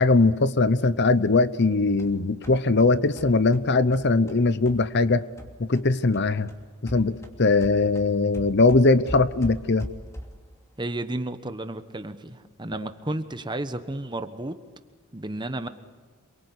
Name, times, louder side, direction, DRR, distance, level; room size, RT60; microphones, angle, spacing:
voice 1, 0.0-5.2 5.6-6.5 6.8-9.9, left 3 dB, 50° left, 14 dB, 0.9 m, -21 dB
sound 1, 1.6-5.9 6.1-10.5, equal, 15° left, 2.8 m, -41 dB
voice 2, 10.8-14.6 15.1-15.7, right 1 dB, 20° right, 10 dB, 1.2 m, -32 dB
27.5 x 23.0 x 8.5 m, 1.4 s
head